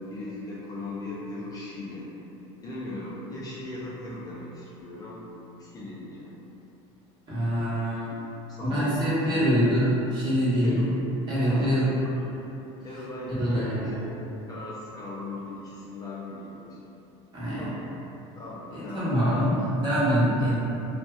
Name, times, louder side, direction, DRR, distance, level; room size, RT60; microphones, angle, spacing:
voice 1, 0.0-2.1 2.6-5.3 5.6-6.3 8.5-9.2 10.6-11.1 11.4-12.3 12.8-14.1 14.5-16.8 17.6-17.9 18.4-19.3 20.0-20.6, left 2 dB, 25° left, -6 dB, 0.4 m, -38 dB
voice 2, 7.3-8.1 8.7-10.9 11.3-11.9 13.4-14.0 17.3-17.6 18.7-20.6, equal, 30° right, -10 dB, 1.1 m, -24 dB
2.6 x 2.4 x 2.3 m, 2.9 s
supercardioid pair, 120°, 14 cm